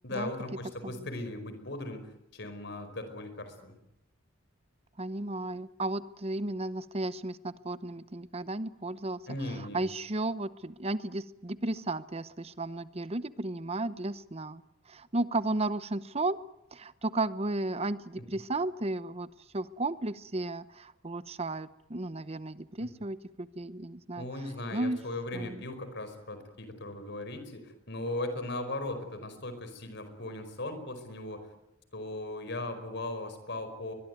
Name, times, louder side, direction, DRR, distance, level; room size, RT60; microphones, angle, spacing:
voice 1, 0.0-3.8 9.3-9.9 18.2-18.3 22.8-22.9 24.2-31.4 31.9-33.9, left 2 dB, 60° left, 9 dB, 5.0 m, -38 dB
voice 2, 5.0-9.2 9.7-14.6 14.9-16.4 16.7-19.3 19.5-24.2 24.7-25.0 25.3-25.6, right 2 dB, 30° right, 15 dB, 0.9 m, -34 dB
22.5 x 22.0 x 9.4 m, 0.83 s
head